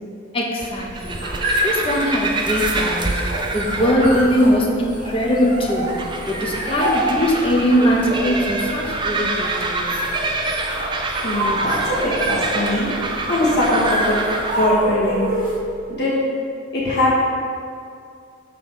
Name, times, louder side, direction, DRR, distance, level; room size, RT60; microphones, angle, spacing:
voice 1, 0.3-1.2 1.6-3.2 3.5-5.9 6.3-9.9, equal, 25° left, -1 dB, 0.8 m, -20 dB
sound 1, 0.6-14.7, right 3 dB, 25° right, 0.4 m, -27 dB
sound 2, 0.8-15.7, right 1 dB, 40° right, 1.4 m, -27 dB
voice 2, 11.2-13.0 13.3-14.2 14.5-15.3 15.9-16.2 16.7-17.2, left 1 dB, 55° left, -7 dB, 1.5 m, -21 dB
6.7 x 3.8 x 5.5 m, 2.4 s
head